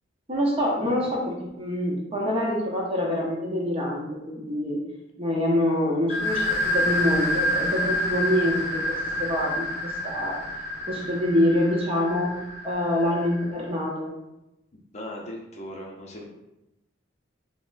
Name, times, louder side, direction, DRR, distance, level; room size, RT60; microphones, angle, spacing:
voice 1, 0.3-4.8 5.2-10.4 10.9-12.3 12.6-14.2, left 1 dB, 30° right, -2 dB, 0.7 m, -26 dB
sound 1, 6.1-13.6, left 1 dB, 15° right, 1.4 m, -28 dB
voice 2, 14.9-16.2, left 1 dB, 35° left, -1 dB, 0.6 m, -38 dB
5.7 x 2.1 x 2.5 m, 0.90 s
head